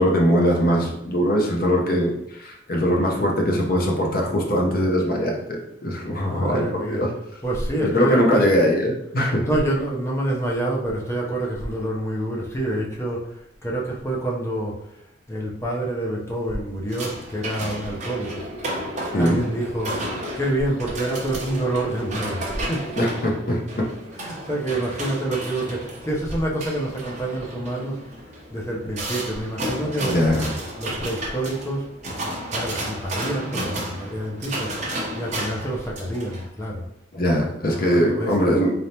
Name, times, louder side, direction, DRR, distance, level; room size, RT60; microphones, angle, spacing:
voice 1, 0.0-7.1 7.8-9.5 19.1-19.4 23.0-23.8 30.0-30.5 37.1-38.7, equal, 50° left, 0 dB, 0.8 m, -21 dB
voice 2, 6.1-7.0 7.4-8.6 9.4-18.4 19.1-22.9 24.1-28.0 28.5-30.2 30.8-31.9 32.5-36.8 37.7-38.3, right 1 dB, 15° left, -3 dB, 0.7 m, -27 dB
sound 1, 16.9-36.5, right 1 dB, 35° right, 0.9 m, -32 dB
3.8 x 3.4 x 2.8 m, 0.80 s
head